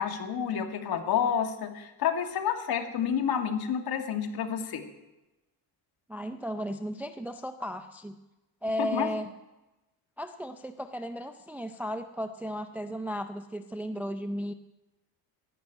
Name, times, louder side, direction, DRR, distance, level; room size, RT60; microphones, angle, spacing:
voice 1, 0.0-4.8 8.8-9.1, left 8 dB, 55° left, 5 dB, 2.0 m, -29 dB
voice 2, 6.1-8.2 8.6-9.3 10.2-14.5, equal, 5° right, 8 dB, 0.4 m, -35 dB
12.0 x 11.5 x 9.1 m, 1.0 s
cardioid pair, 155°, 44 cm